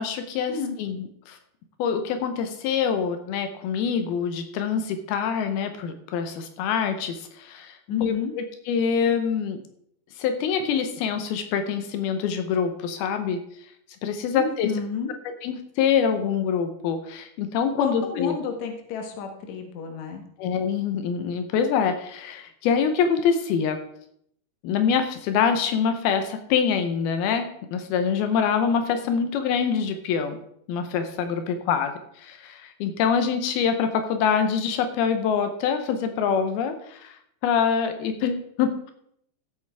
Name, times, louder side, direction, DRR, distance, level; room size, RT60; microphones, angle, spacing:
voice 1, 0.0-1.4 1.8-9.6 10.2-13.4 14.0-14.7 15.4-18.4 20.4-23.8 24.6-30.4 30.7-31.9 32.2-37.2 37.4-38.9, left 7 dB, 80° left, 7 dB, 2.8 m, -25 dB
voice 2, 7.9-8.3 14.3-15.1 17.8-20.2, left 6 dB, 60° left, 4 dB, 2.3 m, -30 dB
15.0 x 8.2 x 3.5 m, 0.70 s
omnidirectional pair, 4.4 m